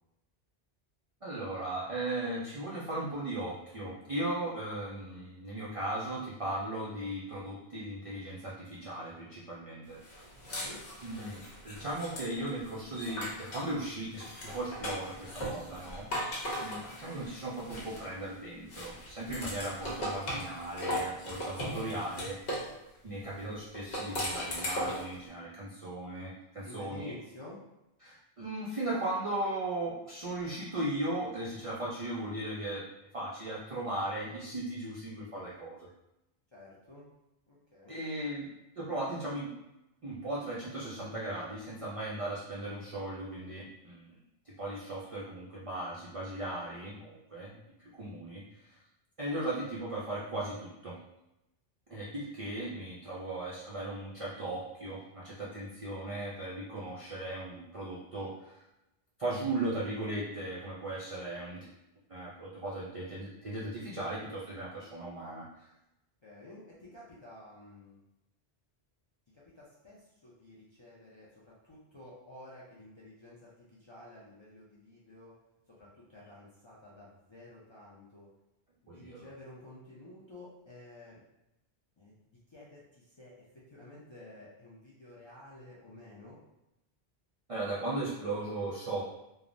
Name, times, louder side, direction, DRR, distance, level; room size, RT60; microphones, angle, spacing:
voice 1, 1.2-10.0 11.0-16.3 16.6-22.4 23.0-27.1 28.0-32.8 33.1-35.9 37.9-38.5 38.8-39.5 40.0-44.2 44.6-48.4 48.7-48.8 49.2-51.0 51.9-58.6 59.2-61.7 62.1-65.5 78.9-79.3 87.5-89.0, right 1 dB, 55° right, -7 dB, 0.4 m, -37 dB
sound 1, 10.0-13.7 14.1-18.3 18.7-22.7 23.7-25.1, equal, 65° left, 1.0 m, -38 dB
voice 2, 10.2-10.8 26.6-27.6 36.5-37.0 37.5-38.0 66.2-68.0 69.3-75.3 75.7-78.3 78.8-81.2 82.0-86.4, left 1 dB, 45° left, -7 dB, 0.4 m, -51 dB
3.1 x 2.0 x 2.5 m, 0.91 s
omnidirectional pair, 1.1 m